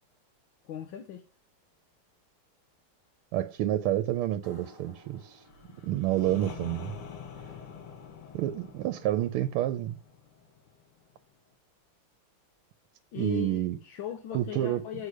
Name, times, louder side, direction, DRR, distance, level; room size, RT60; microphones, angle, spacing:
voice 1, 0.6-1.2 13.1-15.1, left 10 dB, 70° left, 1.5 m, -39 dB
voice 2, 3.3-5.4 5.8-6.9 8.3-10.0 13.2-13.8 14.3-14.8, right 13 dB, 90° right, 1.5 m, -29 dB
sound 1, 4.4-7.7, equal, 10° right, 2.0 m, -57 dB
sound 2, 5.4-11.2, left 6 dB, 85° left, 2.2 m, -46 dB
8.2 x 5.0 x 6.2 m
omnidirectional pair, 2.4 m